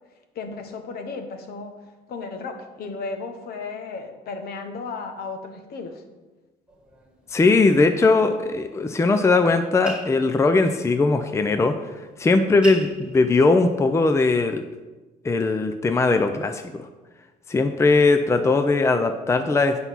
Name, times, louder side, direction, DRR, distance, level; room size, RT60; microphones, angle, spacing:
voice 1, 0.3-1.8 2.1-6.0, left 4 dB, 65° left, 6 dB, 1.3 m, -34 dB
sound 1, 6.7-14.5, right 2 dB, 5° right, 2.0 m, -43 dB
voice 2, 7.3-11.7 12.2-14.6 15.2-16.8 17.5-19.8, left 3 dB, 15° left, 8 dB, 0.5 m, -19 dB
7.9 x 5.6 x 6.0 m, 1.2 s
cardioid pair, 110°, 17 cm